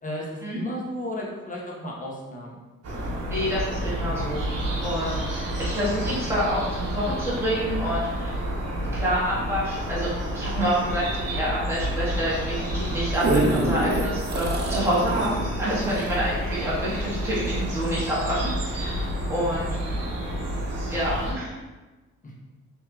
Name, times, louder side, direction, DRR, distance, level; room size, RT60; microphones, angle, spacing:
voice 1, 0.0-2.6 16.6-16.7 19.4-19.5 22.2-22.3, equal, 25° left, -3 dB, 1.0 m, -34 dB
sound 1, 2.8-21.3, equal, 55° right, 1.1 m, -30 dB
voice 2, 3.3-4.4 4.8-8.3 8.9-19.8 20.9-21.5, equal, 10° right, -9 dB, 1.5 m, -28 dB
sound 2, 12.8-17.5 18.0-18.1, right 2 dB, 35° right, 0.5 m, -27 dB
4.6 x 3.1 x 2.4 m, 1.2 s
cardioid pair, 90°, 30 cm